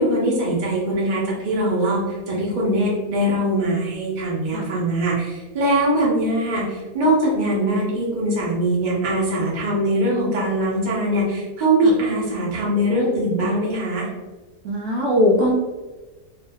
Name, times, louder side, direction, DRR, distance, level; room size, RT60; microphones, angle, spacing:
voice 1, 0.0-14.1, right 1 dB, 40° right, -5 dB, 0.8 m, -22 dB
voice 2, 14.6-15.5, left 1 dB, 70° right, -2 dB, 1.0 m, -19 dB
2.8 x 2.1 x 3.4 m, 1.2 s
omnidirectional pair, 1.7 m